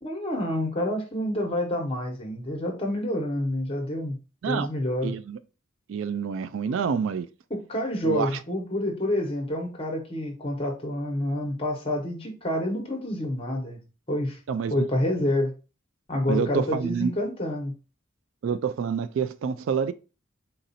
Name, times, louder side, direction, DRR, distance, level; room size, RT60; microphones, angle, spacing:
voice 1, 0.0-4.2 4.4-5.1 6.6-6.7 7.5-13.8 14.1-14.4 14.7-15.5 16.1-17.7, left 1 dB, 25° left, 1.0 m, -28 dB
voice 2, 5.0-5.4 5.9-7.3 8.0-8.4 14.5-14.7 16.3-17.1 18.4-19.9, right 6 dB, 70° right, 0.3 m, -27 dB
4.0 x 2.6 x 4.0 m
head